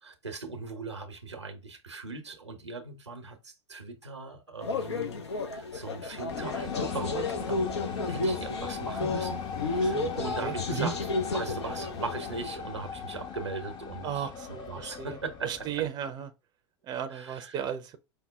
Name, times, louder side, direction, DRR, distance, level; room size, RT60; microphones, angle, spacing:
voice 1, 0.0-15.8 17.1-17.6, right 4 dB, 90° right, 1.0 m, -39 dB
sound 1, 4.6-12.6, left 3 dB, 75° left, 0.8 m, -32 dB
sound 2, 6.3-15.9, left 6 dB, 30° left, 0.7 m, -38 dB
voice 2, 9.8-10.9 14.0-16.3 16.8-18.0, right 9 dB, 30° right, 0.6 m, -35 dB
5.5 x 2.1 x 3.4 m
figure-of-eight pair, 90°, 14 cm